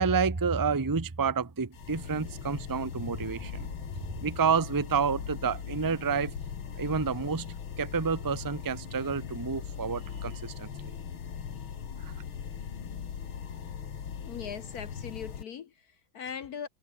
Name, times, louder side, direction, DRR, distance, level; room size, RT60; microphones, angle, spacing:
voice 1, 0.0-3.7 4.2-6.3 6.7-7.4 7.8-10.7 12.0-12.1, right 5 dB, 20° right, 0.6 m, -29 dB
sound 1, 1.7-15.4, left 7 dB, 75° left, 2.7 m, -40 dB
voice 2, 14.2-16.7, left 7 dB, 55° left, 1.2 m, -40 dB
omnidirectional pair, 2.3 m